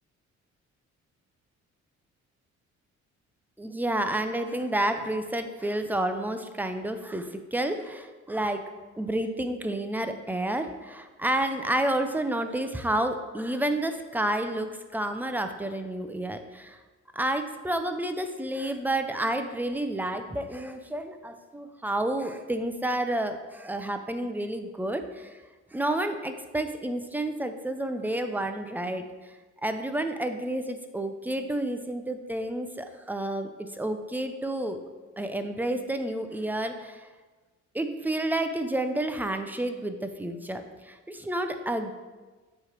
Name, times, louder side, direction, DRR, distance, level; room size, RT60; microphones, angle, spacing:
voice 1, 3.6-8.6 9.0-16.8 17.1-25.4 25.7-29.3 29.6-34.8 35.2-37.1 37.7-41.9, right 1 dB, 5° right, 7 dB, 0.5 m, -30 dB
7.4 x 3.2 x 4.5 m, 1.3 s
cardioid pair, 90°, 30 cm